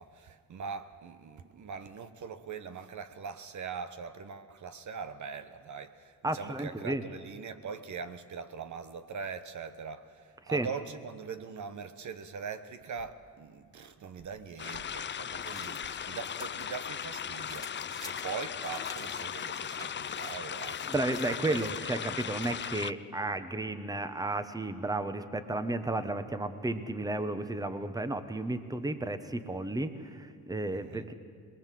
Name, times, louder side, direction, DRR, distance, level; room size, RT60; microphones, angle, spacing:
voice 1, 0.0-20.9 21.3-21.7 30.7-31.1, right 6 dB, 50° right, 1.2 m, -42 dB
voice 2, 6.2-7.0 10.5-10.7 20.9-31.1, right 2 dB, 10° right, 1.2 m, -33 dB
sound 1, 14.5-16.7 17.1-22.8, left 1 dB, 10° left, 1.6 m, -51 dB
sound 2, 14.6-22.9, left 8 dB, 30° left, 0.5 m, -37 dB
22.5 x 20.5 x 7.7 m
cardioid pair, 90°, 36 cm